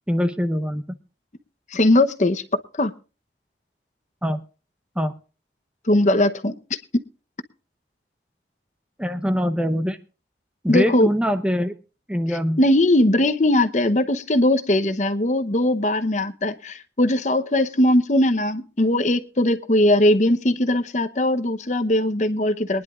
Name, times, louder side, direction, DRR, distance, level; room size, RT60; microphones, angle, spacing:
voice 1, 0.1-1.0 4.2-4.4 5.0-5.1 9.0-10.0 10.6-11.7 12.1-12.6, equal, 5° right, 8 dB, 0.8 m, -23 dB
voice 2, 1.7-2.4 2.8-2.9 5.9-6.6 10.7-11.1 12.3-22.8, left 1 dB, 45° left, 10 dB, 0.9 m, -20 dB
23.0 x 10.5 x 2.4 m, 0.33 s
head